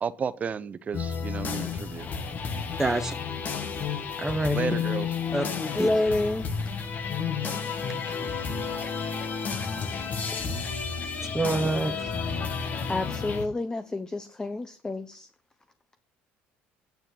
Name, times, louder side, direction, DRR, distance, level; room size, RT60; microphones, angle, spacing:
voice 1, 0.0-2.1 4.5-5.1, right 6 dB, 35° right, 0.9 m, -32 dB
sound 1, 0.9-13.5, left 6 dB, 40° left, 1.7 m, -31 dB
voice 2, 2.8-3.1 4.2-4.6 5.3-5.5 5.8-5.9 11.3-12.1, right 2 dB, 10° right, 1.1 m, -26 dB
voice 3, 5.7-6.5 12.9-15.3, left 2 dB, 15° left, 0.9 m, -28 dB
9.2 x 8.0 x 5.7 m
supercardioid pair, 100°, 4 cm